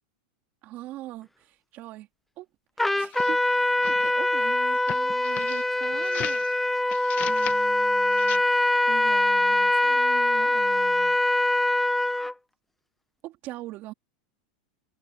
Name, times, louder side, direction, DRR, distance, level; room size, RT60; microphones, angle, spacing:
voice 1, 0.6-2.1 2.4-2.5 2.9-6.8 7.3-11.2 13.2-13.9, right 16 dB, 40° right, 3.5 m, -42 dB
Trumpet, 2.8-12.3, left 1 dB, 5° left, 0.8 m, -23 dB
sound 1, 3.0-4.1 4.8-6.5 6.9-7.6 8.1-8.4, left 14 dB, 35° left, 1.3 m, -38 dB
supercardioid pair, 145°, 4 cm